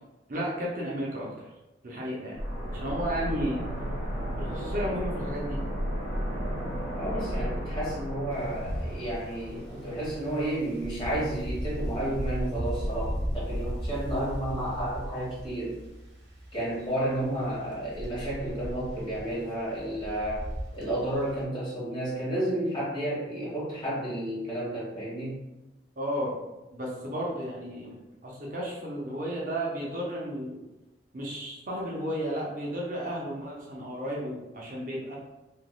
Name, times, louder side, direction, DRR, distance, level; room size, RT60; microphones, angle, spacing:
voice 1, 0.3-1.5 1.8-2.4 2.7-3.6 4.4-5.6 26.0-26.4 26.7-30.6 31.1-35.2, equal, 45° right, -4 dB, 0.6 m, -33 dB
sound 1, 2.4-11.1 11.3-11.4, equal, 5° right, 1.3 m, -34 dB
voice 2, 6.9-15.8 16.5-20.5 20.7-25.4, right 1 dB, 25° left, -9 dB, 1.5 m, -31 dB
Wind, 8.3-21.4, equal, 80° right, 0.9 m, -36 dB
3.4 x 2.9 x 2.3 m, 1.0 s
head